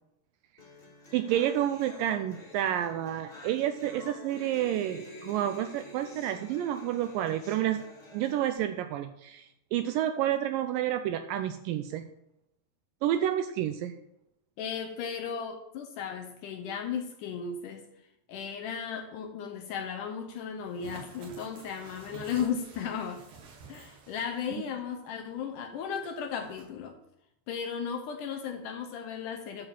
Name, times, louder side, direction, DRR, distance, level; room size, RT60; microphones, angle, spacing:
sound 1, 0.6-8.6, left 2 dB, 20° left, 1.8 m, -49 dB
voice 1, 1.1-7.9 8.1-12.1 13.0-14.0, right 11 dB, 85° right, 9 dB, 2.0 m, -30 dB
voice 2, 14.6-17.8 18.3-23.3 23.7-27.0 27.5-29.7, left 7 dB, 75° left, 5 dB, 2.0 m, -35 dB
sound 2, 20.6-24.6 24.9-25.0 25.9-26.6, right 5 dB, 60° right, 3.0 m, -50 dB
11.5 x 4.8 x 7.3 m, 0.83 s
omnidirectional pair, 4.4 m